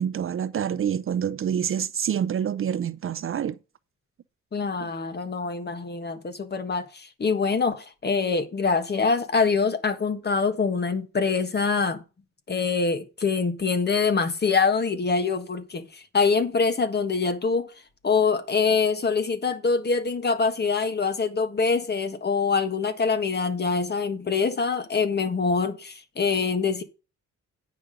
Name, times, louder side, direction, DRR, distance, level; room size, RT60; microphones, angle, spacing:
voice 1, 0.0-3.6 4.8-4.9, right 8 dB, 45° right, 0.5 m, -27 dB
voice 2, 4.5-12.0 12.5-17.7 18.0-26.8, left 5 dB, 35° left, 1.5 m, -24 dB
9.4 x 6.0 x 5.1 m
cardioid pair, 135°, 30 cm